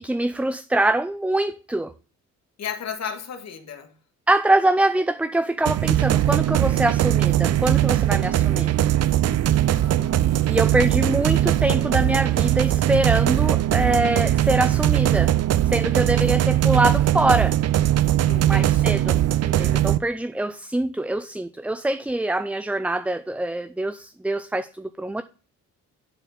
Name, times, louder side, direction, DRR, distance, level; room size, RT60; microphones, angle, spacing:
voice 1, 0.0-1.9 4.3-8.7 10.5-15.3 15.6-17.6 18.5-19.2 19.4-25.2, right 1 dB, 5° right, 0.5 m, -24 dB
voice 2, 2.6-3.9 9.7-10.8 18.3-19.1, left 7 dB, 60° left, 1.8 m, -35 dB
sound 1, 5.7-20.0, right 12 dB, 55° right, 0.6 m, -20 dB
10.5 x 4.6 x 5.4 m
cardioid pair, 90°, 30 cm